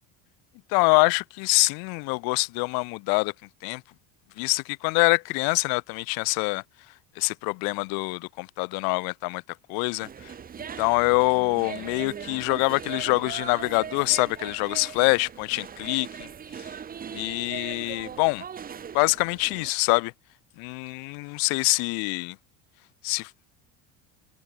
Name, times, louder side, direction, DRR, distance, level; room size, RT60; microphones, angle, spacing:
voice 1, 0.7-3.3 3.6-3.8 4.4-6.6 7.1-9.4 9.7-10.3 10.8-16.3 17.1-18.4 18.9-20.1 20.6-22.4 23.0-23.3, left 33 dB, 70° left, 1.6 m, -25 dB
sound 1, 10.0-19.7, right 7 dB, 25° right, 1.4 m, -40 dB
cardioid pair, 140°, 37 cm